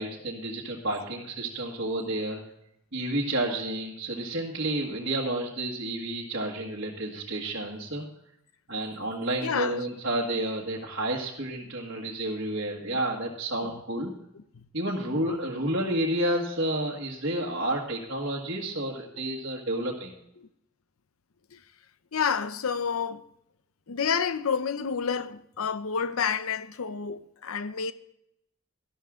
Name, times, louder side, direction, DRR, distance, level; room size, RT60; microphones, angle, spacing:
voice 1, 0.0-2.4 2.9-8.0 8.7-14.1 14.7-20.1, right 1 dB, 55° right, 1.7 m, -30 dB
voice 2, 9.4-9.8 12.9-13.0 13.6-13.7 14.4-14.6 15.0-15.2 20.4-20.5 21.5-21.6 22.1-23.2 23.9-27.9, left 6 dB, 85° left, 0.7 m, -29 dB
12.5 x 12.0 x 3.7 m
head